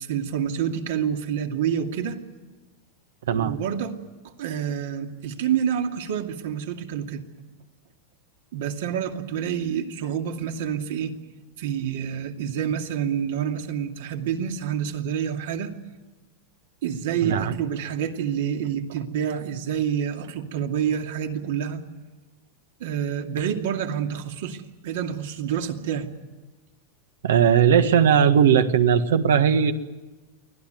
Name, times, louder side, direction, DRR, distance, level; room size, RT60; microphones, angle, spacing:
voice 1, 0.0-2.2 3.3-4.0 4.4-7.2 8.5-11.1 11.6-15.7 16.8-21.8 22.8-26.1, right 8 dB, 70° right, 4 dB, 2.5 m, -28 dB
voice 2, 17.2-17.6 27.2-29.7, right 8 dB, 90° right, 10 dB, 1.6 m, -18 dB
24.5 x 17.0 x 9.3 m, 1.2 s
supercardioid pair, 135°, 0 cm